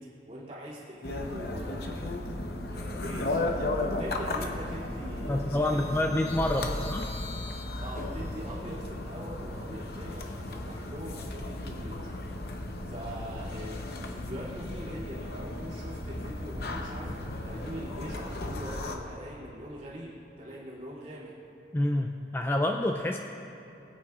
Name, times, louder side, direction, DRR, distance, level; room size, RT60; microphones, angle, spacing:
voice 1, 0.0-2.0 2.7-6.2 6.5-6.9 7.8-12.1 12.9-21.4, equal, 35° right, -7 dB, 2.6 m, -42 dB
sound 1, 1.0-19.0, left 2 dB, 60° left, 0.8 m, -35 dB
voice 2, 5.3-7.0 21.7-23.2, left 1 dB, 10° left, 3 dB, 0.3 m, -28 dB
20.5 x 8.8 x 2.4 m, 2.9 s
head